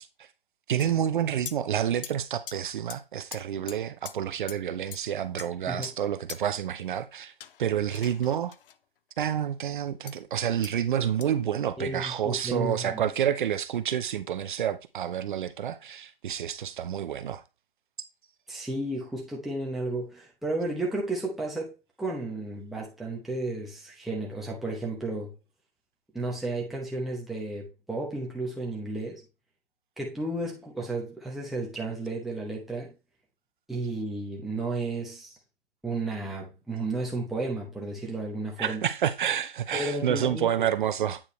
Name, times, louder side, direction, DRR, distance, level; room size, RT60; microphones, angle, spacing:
voice 1, 0.7-7.3 7.6-8.5 9.2-17.4 38.6-41.2, right 9 dB, 55° right, 0.7 m, -29 dB
sound 1, 0.8-0.9 1.4-1.6 2.0-2.1 2.5-2.6 2.9-3.0 3.3-3.4 3.7-3.8 4.0-4.1 4.5-4.6 4.9-5.0 5.4-5.9 6.3-6.4 7.4-8.8 10.1-10.2 10.6-10.7 11.2-11.3, left 9 dB, 65° left, 0.6 m, -41 dB
voice 2, 11.8-13.0 18.5-25.3 26.1-29.2 30.0-32.9 33.7-35.4 35.8-38.8 39.7-40.5, right 2 dB, ahead, 0.9 m, -33 dB
8.7 x 4.7 x 3.1 m
hypercardioid pair, 155°, 30 cm